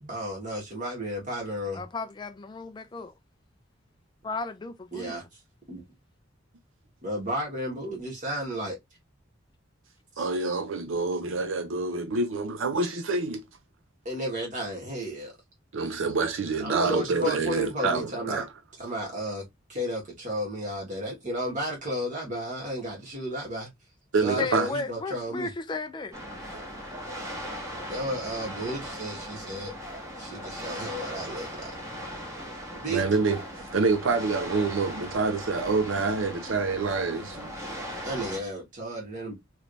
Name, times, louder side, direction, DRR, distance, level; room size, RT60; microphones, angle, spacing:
voice 1, 0.0-1.8 4.9-5.2 5.7-5.8 7.0-8.8 10.1-10.3 14.0-15.3 16.6-18.4 18.8-23.7 24.2-25.5 27.9-29.7 30.2-31.7 32.8-33.0 38.0-39.4, equal, 40° right, 1.7 m, -33 dB
voice 2, 1.7-3.1 4.2-5.1 24.4-26.1, left 3 dB, 20° left, 0.3 m, -34 dB
voice 3, 10.2-13.4 15.7-18.5 24.1-24.7 32.9-33.4 33.7-37.8, right 4 dB, 70° right, 0.5 m, -27 dB
sound 1, 26.1-38.4, equal, 15° right, 1.3 m, -38 dB
3.2 x 3.1 x 2.6 m
head